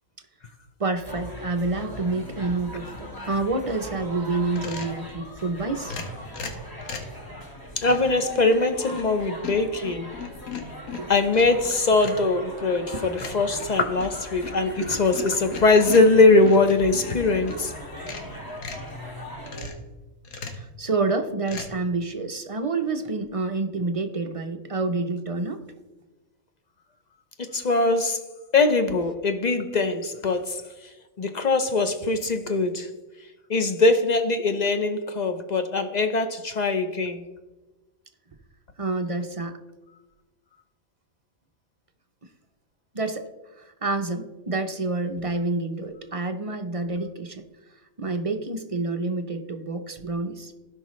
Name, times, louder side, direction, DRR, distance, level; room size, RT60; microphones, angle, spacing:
voice 1, 0.8-5.9 11.0-11.1 13.0-13.2 14.8-15.3 20.5-25.7 38.8-39.6 42.9-43.3 43.6-47.4 48.0-50.5, right 3 dB, 40° right, 0.5 m, -28 dB
sound 1, 1.1-19.7, left 1 dB, 15° left, 1.3 m, -40 dB
sound 2, 4.5-5.0 5.8-7.2 7.8-8.2 8.7-9.2 9.4-11.6 12.0-12.3 13.2-17.6 18.0-18.9 19.5-19.9 20.2-20.7 21.5-21.7, left 4 dB, 80° left, 1.6 m, -38 dB
voice 2, 7.8-10.1 11.1-17.7 27.4-28.2 28.5-30.6 31.2-32.9 33.5-37.2, left 3 dB, 45° left, 0.5 m, -21 dB
16.5 x 5.6 x 3.1 m
omnidirectional pair, 1.5 m